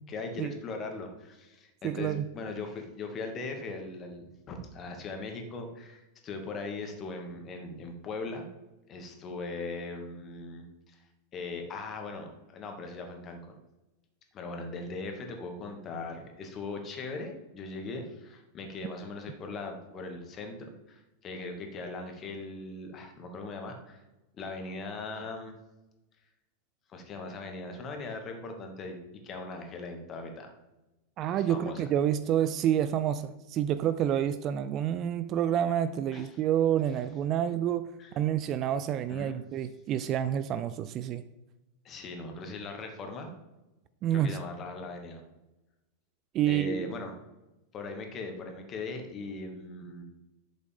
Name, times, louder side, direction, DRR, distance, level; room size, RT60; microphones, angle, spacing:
voice 1, 0.1-8.5 8.9-11.0 11.3-13.4 14.3-24.0 24.3-25.5 26.9-29.0 29.2-30.5 31.3-31.9 36.1-36.3 38.0-38.1 39.1-39.4 41.8-43.3 44.1-45.2 46.5-47.1 47.7-50.0, left 3 dB, 30° left, 4 dB, 1.9 m, -39 dB
voice 2, 1.8-2.3 31.2-37.9 38.1-41.2 44.0-44.4 46.3-46.9, right 10 dB, 35° right, 13 dB, 0.5 m, -28 dB
11.5 x 8.0 x 3.5 m, 1.0 s
figure-of-eight pair, 90°, 0 cm